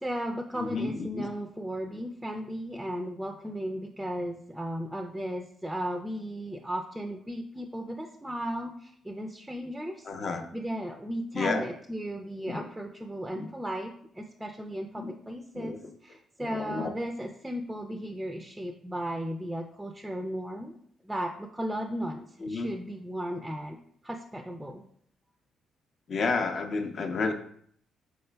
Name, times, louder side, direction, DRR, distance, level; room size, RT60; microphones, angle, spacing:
voice 1, 0.0-10.1 10.5-20.8 21.0-23.8 24.0-24.8, equal, 5° right, 4 dB, 0.4 m, -35 dB
voice 2, 0.6-1.3 10.1-10.5 11.3-11.7 12.5-12.6 13.4-13.5 15.0-15.1 15.5-15.8 16.4-16.9 22.4-22.7 26.1-27.3, left 4 dB, 50° left, 6 dB, 0.6 m, -31 dB
5.4 x 3.9 x 2.2 m, 0.64 s
cardioid pair, 90°, 0 cm